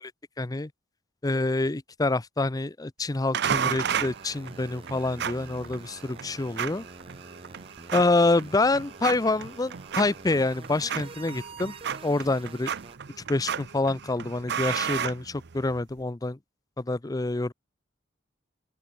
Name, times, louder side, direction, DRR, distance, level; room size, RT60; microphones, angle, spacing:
voice 1, 0.4-0.7 1.2-6.9 7.9-11.7 12.0-12.7 13.3-16.4 16.8-17.5, left 2 dB, 20° left, 0.6 m, -27 dB
sound 1, 3.3-15.8, right 7 dB, 60° right, 0.6 m, -34 dB
sound 2, 3.4-13.0, right 3 dB, 30° right, 1.9 m, -48 dB
open air
head